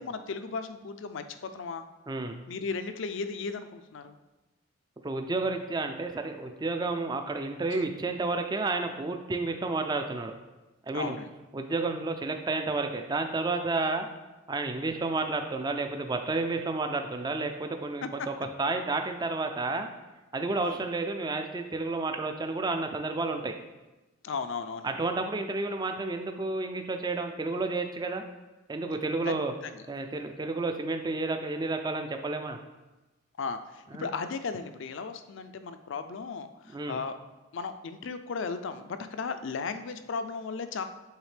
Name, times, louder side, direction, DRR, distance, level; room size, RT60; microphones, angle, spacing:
voice 1, 0.0-1.8 2.5-4.2 7.7-7.8 10.9-11.3 18.0-18.1 20.6-20.8 24.2-24.9 29.3-29.4 29.7-29.8 33.4-37.2 37.5-40.8, left 4 dB, 60° left, 10 dB, 0.4 m, -35 dB
voice 2, 2.1-2.4 5.0-10.3 10.8-11.2 11.5-14.1 14.5-19.9 20.3-23.5 24.8-28.2 28.7-29.5 29.9-32.6 33.9-34.1 36.7-37.0, right 3 dB, 20° right, 5 dB, 0.3 m, -31 dB
8.1 x 3.5 x 3.3 m, 1.1 s
head